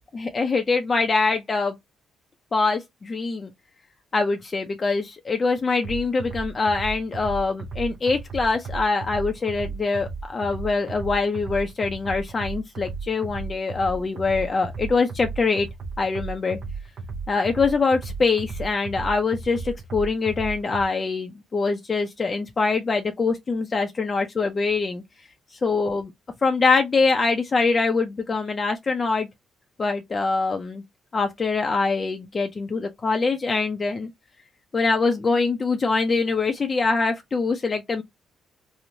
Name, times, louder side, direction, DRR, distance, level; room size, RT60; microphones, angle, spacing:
voice 1, 0.1-1.8 2.5-3.5 4.1-15.7 16.0-16.6 17.3-25.0 25.6-26.1 26.4-29.3 29.8-30.8 31.1-34.1 34.7-38.0, left 4 dB, 35° left, 0.4 m, -24 dB
sound 1, 5.8-20.8, right 4 dB, 70° right, 0.6 m, -35 dB
3.0 x 2.0 x 2.6 m
cardioid pair, 90°, 0 cm